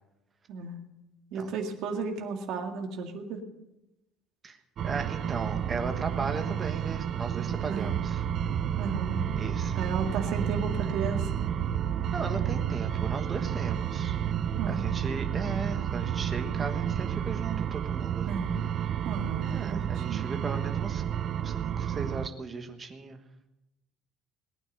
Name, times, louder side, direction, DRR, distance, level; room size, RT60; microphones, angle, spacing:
voice 1, 0.5-0.8 1.3-3.4 7.7-7.9 8.8-9.3 9.8-11.2 14.6-14.9 18.3-18.6 19.0-20.3, right 5 dB, 55° right, 3 dB, 2.0 m, -34 dB
voice 2, 4.8-8.2 9.4-9.8 12.1-14.2 14.7-18.3 19.4-21.0 21.4-23.2, right 4 dB, 20° right, 6 dB, 1.3 m, -37 dB
sound 1, 4.8-22.3, right 9 dB, 35° right, 0.4 m, -31 dB
sound 2, 7.9-18.0, right 8 dB, 75° right, 1.5 m, -36 dB
19.0 x 9.1 x 6.6 m, 0.95 s
cardioid pair, 170°, 0 cm